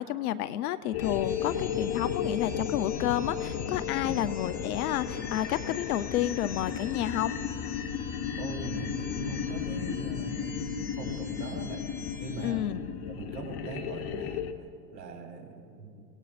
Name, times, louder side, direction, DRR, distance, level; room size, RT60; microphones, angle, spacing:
voice 1, 0.0-7.4 12.4-12.8, left 12 dB, 60° left, 14 dB, 0.8 m, -30 dB
sound 1, 0.9-14.5, left 7 dB, 45° left, 1.1 m, -34 dB
sound 2, 1.0-12.5, left 5 dB, 90° left, 2.8 m, -47 dB
voice 2, 8.4-11.8 12.2-14.4 14.9-16.1, right 3 dB, 85° right, 0 dB, 4.1 m, -41 dB
28.5 x 18.0 x 2.6 m, 2.3 s
hypercardioid pair, 115°, 49 cm